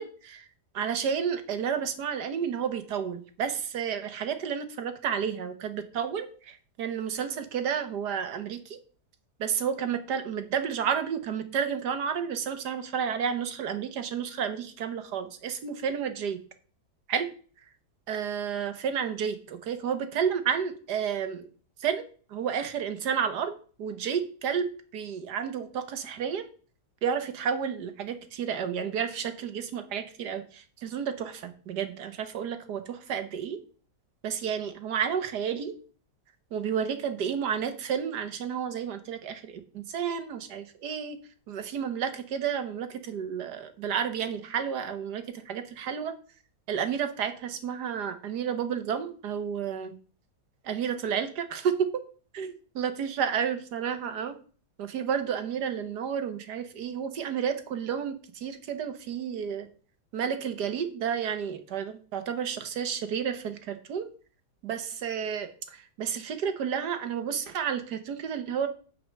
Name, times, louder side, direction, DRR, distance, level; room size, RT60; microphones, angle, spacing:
voice 1, 0.0-0.5 0.7-8.8 9.4-16.4 17.1-17.3 18.1-21.5 21.8-22.0 22.3-26.4 27.0-33.6 34.2-35.8 36.5-41.2 41.5-46.1 46.7-50.0 50.6-51.9 52.3-54.3 54.8-59.7 60.1-64.1 64.6-68.7, right 7 dB, 80° right, 9 dB, 1.7 m, -31 dB
9.5 x 4.8 x 6.4 m, 0.40 s
omnidirectional pair, 1.7 m